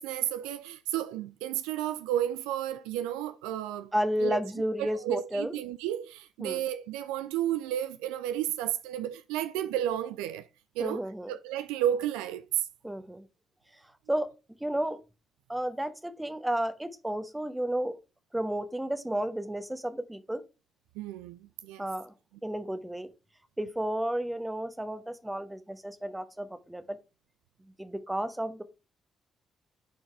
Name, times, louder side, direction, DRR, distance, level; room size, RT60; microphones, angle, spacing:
voice 1, 0.0-3.9 4.2-4.4 4.8-10.4 10.8-11.0 11.3-12.7 21.0-21.9, right 11 dB, 75° right, 0.3 m, -32 dB
voice 2, 3.9-5.6 6.4-6.6 10.8-11.3 12.8-13.2 14.1-14.3 14.6-15.0 15.5-17.9 18.3-20.4 21.8-22.1 22.4-23.1 23.6-27.0 27.8-28.6, right 1 dB, 10° right, 1.0 m, -32 dB
9.3 x 4.6 x 3.3 m
figure-of-eight pair, 40°, 0 cm